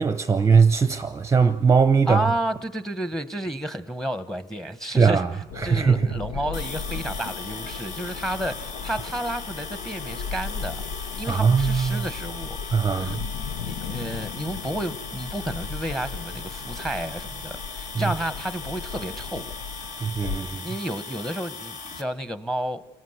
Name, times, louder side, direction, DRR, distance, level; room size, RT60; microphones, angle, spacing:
voice 1, 0.0-2.3 4.9-5.3 5.6-6.0 11.3-12.0 12.7-13.2 20.0-20.7, right 5 dB, 20° right, 0.8 m, -20 dB
voice 2, 2.1-5.2 5.6-12.6 12.9-13.2 13.6-19.5 20.4-22.9, right 1 dB, ahead, 1.3 m, -31 dB
sound 1, 5.5-20.4, left 6 dB, 75° left, 0.9 m, -36 dB
sound 2, 6.5-22.0, left 4 dB, 50° left, 2.4 m, -38 dB
29.0 x 19.0 x 8.1 m
supercardioid pair, 95°, 15 cm